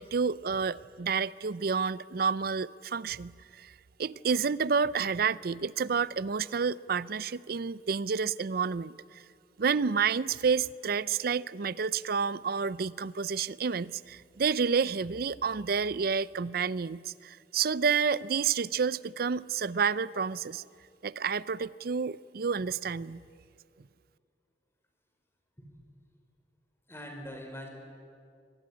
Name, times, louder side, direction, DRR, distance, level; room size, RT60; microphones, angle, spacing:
voice 1, 0.0-3.7 4.0-9.2 9.6-20.6 21.0-23.2, right 6 dB, 55° right, 19 dB, 0.5 m, -29 dB
voice 2, 26.9-27.7, equal, 15° left, 3 dB, 4.5 m, -43 dB
25.5 x 19.0 x 9.8 m, 2.3 s
head